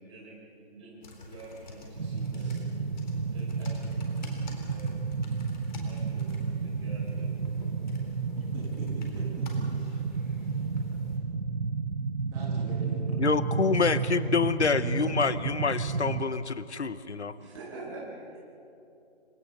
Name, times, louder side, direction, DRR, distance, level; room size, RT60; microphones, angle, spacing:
voice 1, 0.0-2.7 3.2-5.3 5.7-7.3 17.4-18.4, right 2 dB, 25° right, -4 dB, 6.2 m, -47 dB
sound 1, 1.0-11.2, left 2 dB, 40° left, 4.1 m, -48 dB
sound 2, 2.0-16.2, right 5 dB, 80° right, 1.4 m, -31 dB
voice 2, 8.4-8.8 12.3-13.0, right 3 dB, 10° right, -7 dB, 3.0 m, -41 dB
voice 3, 13.2-17.3, left 5 dB, 85° left, 14 dB, 1.0 m, -27 dB
29.5 x 27.0 x 4.2 m, 2.7 s
figure-of-eight pair, 165°, 33 cm